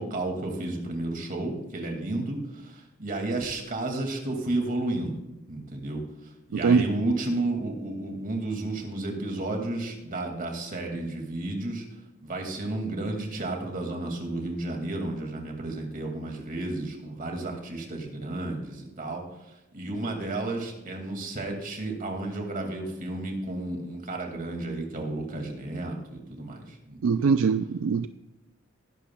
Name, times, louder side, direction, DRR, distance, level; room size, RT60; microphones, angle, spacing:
voice 1, 0.0-5.2 5.5-6.0 6.5-11.8 12.2-19.2 19.7-27.3, right 2 dB, 45° right, 2 dB, 2.2 m, -32 dB
voice 2, 27.0-28.1, right 5 dB, 70° right, 11 dB, 0.4 m, -22 dB
20.0 x 11.5 x 2.3 m, 0.95 s
head